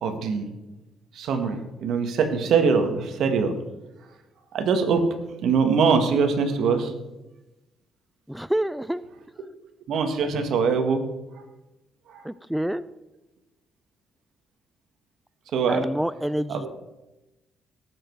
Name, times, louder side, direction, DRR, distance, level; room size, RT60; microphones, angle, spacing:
voice 1, 0.0-0.5 1.2-3.5 4.5-5.1 5.4-6.9 9.9-11.0 15.5-15.9 16.5-16.7, right 5 dB, 75° right, 6 dB, 1.9 m, -22 dB
voice 2, 8.3-9.0 12.3-12.8 15.7-16.7, right 1 dB, 5° right, 16 dB, 0.4 m, -27 dB
18.5 x 7.9 x 4.8 m, 1.0 s
cardioid pair, 90°, 0 cm